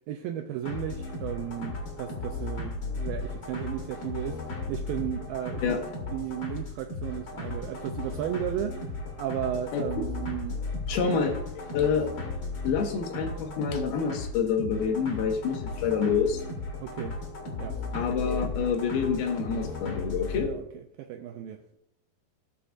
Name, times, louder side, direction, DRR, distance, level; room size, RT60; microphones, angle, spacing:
voice 1, 0.1-4.4 4.7-5.8 6.1-10.6 11.0-11.3 11.8-11.9 16.8-17.2 17.6-17.8 20.4-21.6, right 11 dB, 80° right, 5 dB, 2.0 m, -35 dB
sound 1, 0.6-20.5, left 3 dB, 35° left, 2.2 m, -36 dB
voice 2, 10.9-11.3 11.7-12.1 12.6-16.4 17.9-20.5, left 6 dB, 75° left, 4 dB, 2.9 m, -27 dB
18.0 x 7.0 x 2.5 m, 0.79 s
omnidirectional pair, 4.6 m